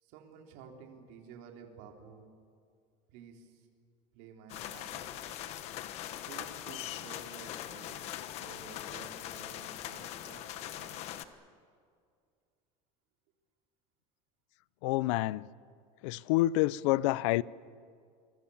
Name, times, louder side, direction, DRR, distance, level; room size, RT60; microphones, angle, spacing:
voice 1, 0.0-2.2 3.1-3.7 4.1-5.0 6.1-10.5 10.8-11.0, right 6 dB, 60° right, 3.8 m, -52 dB
sound 1, 4.5-11.2, left 12 dB, 40° left, 1.2 m, -41 dB
voice 2, 14.8-15.4 16.0-17.4, left 17 dB, 75° left, 0.6 m, -28 dB
28.5 x 22.0 x 7.2 m
cardioid pair, 170°, 16 cm